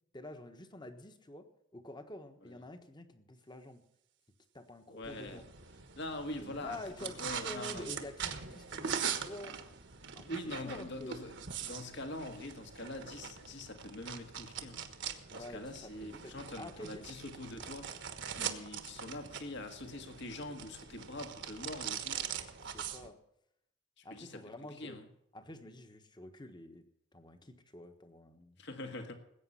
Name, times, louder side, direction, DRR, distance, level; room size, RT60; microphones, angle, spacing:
voice 1, 0.1-3.8 4.5-5.4 6.4-9.6 10.1-11.2 15.3-17.1 22.7-23.2 24.0-25.0 25.3-26.9 27.1-28.6, left 1 dB, 20° left, 8 dB, 1.3 m, -48 dB
voice 2, 4.9-5.4 6.0-7.9 10.3-11.3 11.6-14.8 15.3-17.9 18.3-22.2 24.0-24.4 24.7-25.0 28.6-29.1, left 1 dB, 60° left, 6 dB, 1.8 m, -44 dB
sound 1, 5.0-23.1, right 7 dB, 60° right, 1.4 m, -42 dB
19.5 x 8.8 x 5.7 m, 0.77 s
head